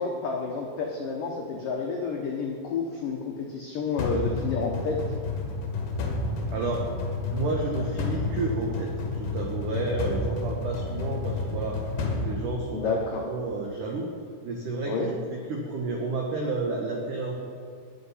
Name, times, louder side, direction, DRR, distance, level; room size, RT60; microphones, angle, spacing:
voice 1, 0.0-5.0 12.7-13.2 14.9-15.1, left 4 dB, 90° left, 0 dB, 1.9 m, -30 dB
sound 1, 4.0-13.2, left 3 dB, 55° left, 2.7 m, -31 dB
voice 2, 6.5-6.9 7.3-11.8 12.2-14.1 14.4-17.4, right 3 dB, 90° right, 0 dB, 1.8 m, -31 dB
19.5 x 8.9 x 5.7 m, 2.2 s
omnidirectional pair, 5.7 m